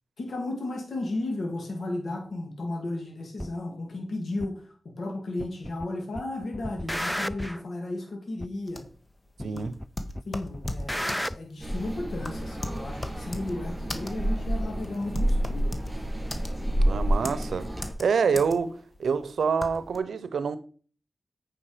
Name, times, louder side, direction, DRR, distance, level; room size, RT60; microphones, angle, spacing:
voice 1, 0.2-4.7 5.0-8.8 9.4-9.7 10.3-15.7, left 2 dB, 75° left, 2.1 m, -34 dB
sound 1, 3.4-3.5 4.4-4.5 5.4-5.9 6.1-7.6 8.4-8.5 9.4-9.9 10.1-11.4, equal, 5° left, 0.3 m, -32 dB
sound 2, 8.7-20.0, left 2 dB, 35° left, 1.2 m, -38 dB
voice 2, 9.4-9.7 16.8-17.7 18.0-20.6, right 5 dB, 90° right, 0.6 m, -26 dB
sound 3, 11.6-17.9, right 1 dB, 25° right, 4.3 m, -29 dB
8.7 x 5.1 x 4.9 m
cardioid pair, 50°, 0 cm